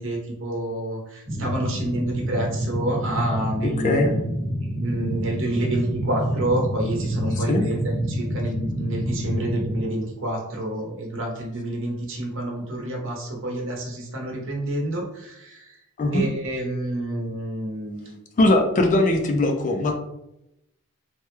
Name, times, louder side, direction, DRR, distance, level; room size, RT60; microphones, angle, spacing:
voice 1, 0.0-4.2 4.8-15.8 16.1-18.2, right 1 dB, 60° right, 0 dB, 0.9 m, -28 dB
sound 1, 1.3-9.8, equal, 25° right, 1.2 m, -28 dB
voice 2, 3.8-4.1 7.5-7.6 16.0-16.2 18.4-20.0, left 1 dB, 35° left, 4 dB, 0.4 m, -20 dB
3.3 x 2.1 x 3.1 m, 0.85 s
head